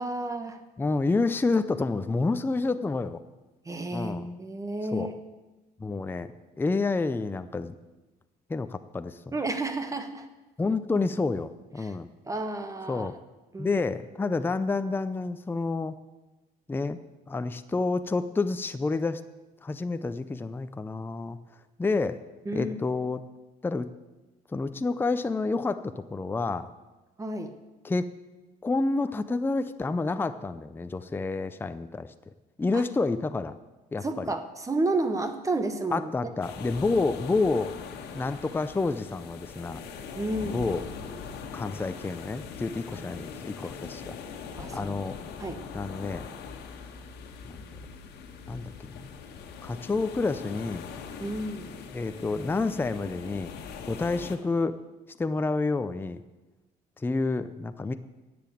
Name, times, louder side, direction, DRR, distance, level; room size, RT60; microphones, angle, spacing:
voice 1, 0.0-0.6 3.6-5.2 9.3-10.3 11.8-11.9 12.3-13.1 13.5-13.8 14.2-14.4 22.5-22.8 27.2-27.5 32.7-32.8 34.0-36.3 40.1-40.7 44.6-45.0 45.4-45.6 51.2-51.7, right 2 dB, 20° right, 8 dB, 1.1 m, -31 dB
voice 2, 0.8-3.2 3.9-4.2 4.9-5.1 5.8-6.3 6.6-7.7 8.5-9.3 10.6-12.1 12.9-13.1 13.6-15.9 16.7-17.0 17.3-19.2 19.6-21.4 21.8-22.2 22.5-23.2 23.6-23.9 24.5-26.7 27.8-28.1 28.6-32.1 32.6-33.5 33.9-34.3 35.9-37.8 38.1-39.8 40.5-40.8 41.5-44.2 44.7-45.2 45.7-46.3 47.4-47.6 48.5-49.1 49.6-50.9 51.9-53.5 53.9-54.8 55.2-56.2 57.0-57.9, left 3 dB, 10° left, 10 dB, 0.5 m, -29 dB
sound 1, 36.4-54.4, left 6 dB, 75° left, 1.4 m, -41 dB
10.5 x 7.9 x 8.6 m, 1.1 s
cardioid pair, 110°, 17 cm